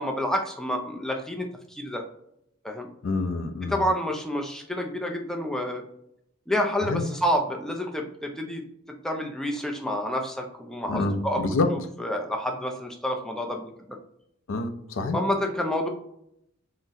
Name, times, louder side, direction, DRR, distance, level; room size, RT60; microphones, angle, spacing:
voice 1, 0.0-2.0 2.6-2.9 3.6-5.8 6.5-8.6 9.0-11.4 12.0-14.0 15.1-15.9, equal, 5° left, 1 dB, 0.4 m, -29 dB
voice 2, 3.0-3.8 6.8-7.1 10.9-11.7 14.5-15.2, left 3 dB, 85° left, 8 dB, 0.4 m, -27 dB
3.8 x 2.0 x 2.6 m, 0.75 s
head